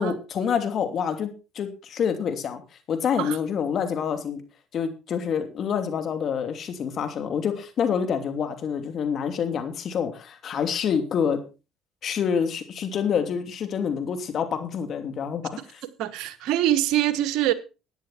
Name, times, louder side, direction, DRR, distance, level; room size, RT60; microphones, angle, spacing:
voice 1, 0.0-2.6 2.9-4.4 4.7-11.4 12.0-15.6, left 7 dB, 55° left, 2.8 m, -27 dB
voice 2, 16.0-17.5, right 13 dB, 70° right, 1.3 m, -24 dB
14.0 x 10.0 x 4.4 m
hypercardioid pair, 70°, 0 cm